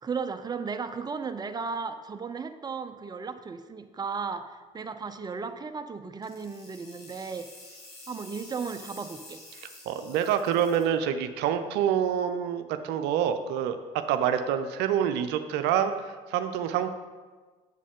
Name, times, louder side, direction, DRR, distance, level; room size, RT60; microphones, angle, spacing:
voice 1, 0.0-7.5 8.1-9.4, right 5 dB, 20° right, 8 dB, 0.6 m, -35 dB
sound 1, 6.2-10.8, left 2 dB, 85° left, 2.6 m, -48 dB
voice 2, 9.9-16.9, right 9 dB, 65° right, 8 dB, 0.6 m, -27 dB
8.3 x 7.4 x 3.7 m, 1.4 s
hypercardioid pair, 55°, 19 cm